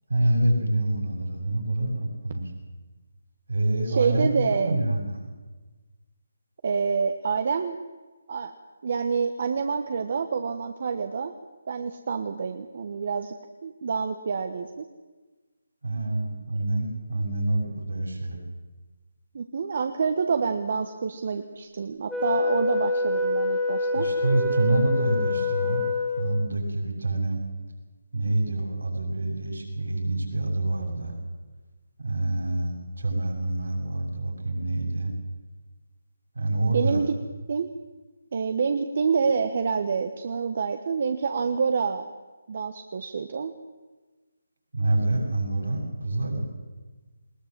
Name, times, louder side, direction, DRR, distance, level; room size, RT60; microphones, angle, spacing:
voice 1, 0.1-2.5 3.5-5.3 15.8-18.4 23.9-25.8 26.2-27.4 28.1-31.2 32.0-35.1 36.3-37.0 44.7-46.4, right 2 dB, 75° right, 1 dB, 6.8 m, -26 dB
voice 2, 3.9-4.7 6.6-7.8 8.3-8.5 8.8-11.3 11.7-13.3 13.6-14.8 19.3-24.1 36.7-37.1 37.5-37.7 38.3-42.1 42.5-43.5, right 5 dB, 50° right, 7 dB, 1.2 m, -27 dB
Wind instrument woodwind instrument, 22.1-26.5, left 2 dB, 5° left, 2.0 m, -26 dB
20.5 x 19.0 x 7.6 m, 1.3 s
figure-of-eight pair, 155°, 0 cm